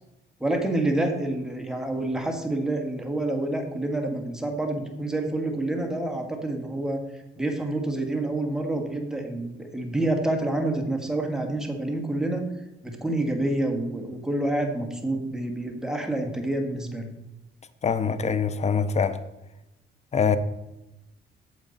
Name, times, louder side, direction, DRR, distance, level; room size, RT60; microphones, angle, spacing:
voice 1, 0.4-7.0 7.4-12.4 12.8-17.1, right 1 dB, 5° right, 1.6 m, -28 dB
voice 2, 17.8-19.2 20.1-20.4, left 6 dB, 35° left, 0.7 m, -24 dB
9.0 x 7.2 x 4.1 m
cardioid pair, 90°, 20 cm